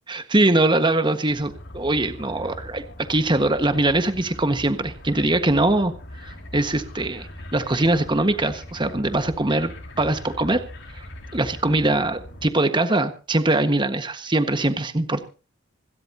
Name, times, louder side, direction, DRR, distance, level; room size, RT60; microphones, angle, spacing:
voice 1, 0.1-2.8 3.1-5.9 6.3-9.7 10.0-10.6 10.9-11.0 11.3-15.3, right 2 dB, 25° right, 9 dB, 1.5 m, -22 dB
sound 1, 1.3-12.5, left 1 dB, 65° left, 4.2 m, -40 dB
27.0 x 13.0 x 2.8 m, 0.35 s
head